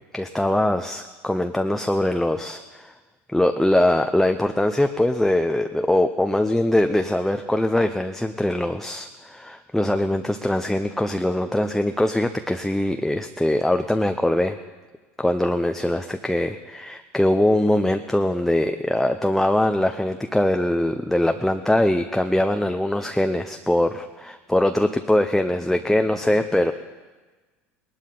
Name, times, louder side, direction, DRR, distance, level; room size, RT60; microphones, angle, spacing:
voice 1, 0.1-2.9 3.3-14.6 15.2-26.7, left 1 dB, 5° left, 6 dB, 0.7 m, -22 dB
19.5 x 11.5 x 3.9 m, 1.3 s
hypercardioid pair, 80°, 7 cm